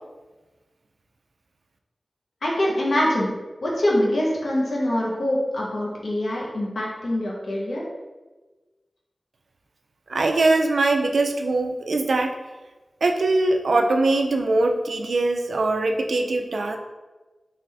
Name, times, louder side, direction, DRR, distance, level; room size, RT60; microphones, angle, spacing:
voice 1, 2.4-3.3 3.6-7.8, left 1 dB, 85° left, -4 dB, 1.0 m, -24 dB
voice 2, 10.1-12.4 13.0-16.8, right 2 dB, 85° right, 4 dB, 0.4 m, -22 dB
3.6 x 3.3 x 3.3 m, 1.2 s
wide cardioid pair, 85°, 0 cm